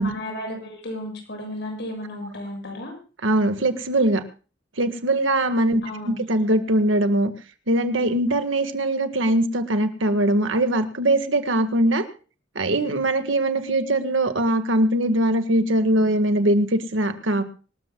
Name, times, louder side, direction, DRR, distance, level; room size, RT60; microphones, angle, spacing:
voice 1, 0.0-2.9 5.8-6.2, left 1 dB, 65° left, 3 dB, 7.3 m, -33 dB
voice 2, 3.2-4.2 4.8-7.3 7.7-12.0 12.6-17.4, right 1 dB, 85° right, 8 dB, 1.7 m, -21 dB
25.0 x 13.5 x 2.3 m, 0.36 s
head